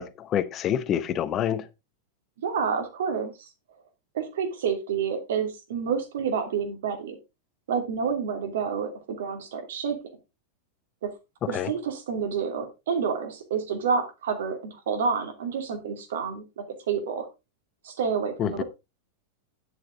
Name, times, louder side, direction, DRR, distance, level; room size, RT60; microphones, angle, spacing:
voice 1, 0.0-1.6 11.5-11.7 18.4-18.6, left 10 dB, 30° left, 1.1 m, -27 dB
voice 2, 2.4-3.5 4.1-7.2 7.7-8.9 9.2-10.0 11.0-11.1 11.5-17.3 17.8-18.6, right 6 dB, 60° right, 2.7 m, -29 dB
10.5 x 8.1 x 3.9 m
figure-of-eight pair, 90°, 0 cm